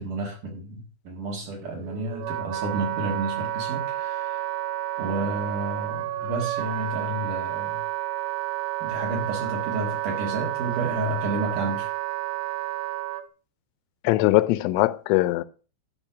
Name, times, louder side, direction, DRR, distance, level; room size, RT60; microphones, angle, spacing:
voice 1, 0.0-4.4 5.0-7.8 8.8-11.9, right 2 dB, 55° right, 2.5 m, -31 dB
Wind instrument woodwind instrument, 1.6-13.2, right 14 dB, 90° right, 3.6 m, -30 dB
voice 2, 14.0-15.4, left 18 dB, 90° left, 3.3 m, -21 dB
13.0 x 5.3 x 5.8 m
omnidirectional pair, 5.7 m